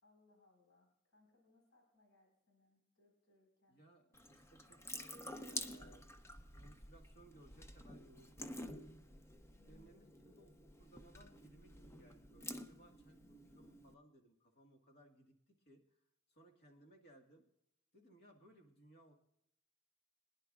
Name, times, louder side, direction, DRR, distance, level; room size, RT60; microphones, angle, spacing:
voice 1, 0.0-3.8 9.5-10.3, left 2 dB, 70° left, 0 dB, 4.5 m, -72 dB
voice 2, 3.7-6.1 6.5-8.6 9.7-16.0 16.3-17.5 17.9-19.1, right 1 dB, 50° left, 3 dB, 1.7 m, -64 dB
Water tap faucet / Sink (filling or washing) / Drip, 4.1-13.9, left 1 dB, 10° left, 0.6 m, -50 dB
23.5 x 10.5 x 2.4 m, 0.75 s
head